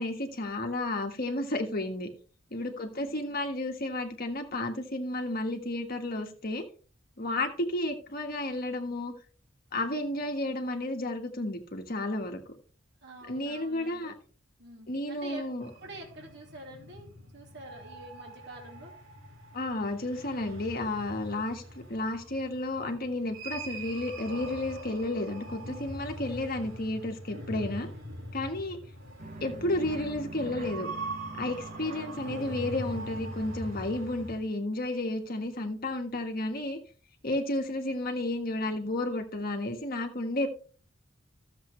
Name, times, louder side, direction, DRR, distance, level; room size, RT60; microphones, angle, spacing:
voice 1, 0.0-2.1 2.5-6.6 7.2-9.1 9.7-12.4 13.3-14.1 14.9-15.7 19.5-21.6 21.9-27.9 28.3-28.8 29.4-30.9 31.4-36.8 37.2-40.5, left 1 dB, 50° left, 1.6 m, -32 dB
voice 2, 2.6-3.2 13.0-14.2 14.6-15.5 15.8-18.9, right 1 dB, 60° right, 2.8 m, -47 dB
sound 1, 15.6-34.4, right 1 dB, 85° right, 4.4 m, -42 dB
sound 2, 29.2-34.3, right 2 dB, 40° right, 0.7 m, -44 dB
13.5 x 7.4 x 3.2 m
head